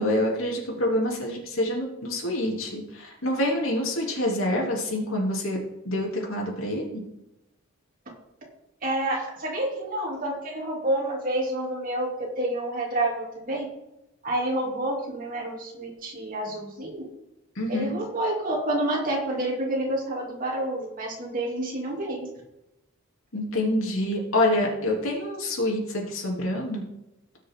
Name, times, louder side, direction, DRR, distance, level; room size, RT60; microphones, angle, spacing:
voice 1, 0.0-5.6 5.8-6.9 17.6-18.0 23.3-26.8, left 1 dB, 80° left, -1 dB, 3.1 m, -26 dB
voice 2, 8.8-12.1 12.4-13.7 14.2-17.0 17.7-22.3, right 1 dB, 40° right, -3 dB, 3.0 m, -28 dB
18.0 x 6.3 x 3.8 m, 0.91 s
head